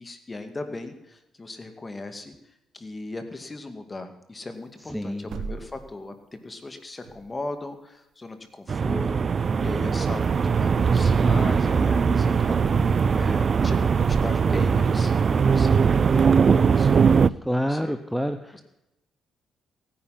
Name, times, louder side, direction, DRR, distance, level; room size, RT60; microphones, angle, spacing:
voice 1, 0.0-2.3 2.7-17.1 17.7-17.9 18.5-18.6, left 2 dB, 25° left, 7 dB, 2.1 m, -38 dB
sound 1, 4.8-6.0 7.0-7.5 8.7-8.8 9.1-9.2 10.1-10.5 10.8-11.0 12.9-13.0 13.4-13.7 14.0-14.7, right 5 dB, 70° right, 1.6 m, -38 dB
voice 2, 4.9-5.4 17.4-18.6, equal, ahead, 8 dB, 0.9 m, -28 dB
sound 2, 8.7-17.3, right 6 dB, 45° right, 0.4 m, -20 dB
16.0 x 10.0 x 5.8 m, 0.88 s
cardioid pair, 90°, 0 cm